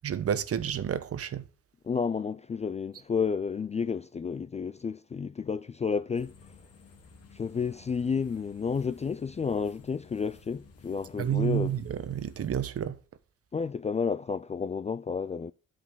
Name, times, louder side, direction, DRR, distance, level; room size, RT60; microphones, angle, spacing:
voice 1, 0.0-1.4 11.2-13.0, right 9 dB, 50° right, 1.0 m, -30 dB
voice 2, 1.8-6.3 7.3-11.8 13.5-15.5, left 5 dB, 25° left, 0.4 m, -31 dB
sound 1, 6.1-12.5, left 4 dB, 50° left, 2.1 m, -54 dB
12.0 x 5.3 x 3.8 m
cardioid pair, 90°, 30 cm